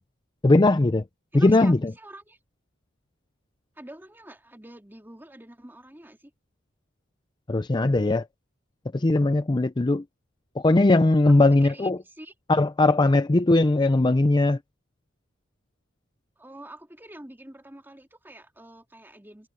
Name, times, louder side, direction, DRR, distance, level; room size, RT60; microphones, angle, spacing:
voice 1, 0.4-1.0 1.3-1.9 7.5-8.2 8.9-10.0 10.6-12.0 12.5-14.6, left 2 dB, 20° left, 0.5 m, -19 dB
voice 2, 1.3-2.4 3.8-6.3 11.3-12.3 16.4-19.5, right 1 dB, 10° right, 2.5 m, -46 dB
head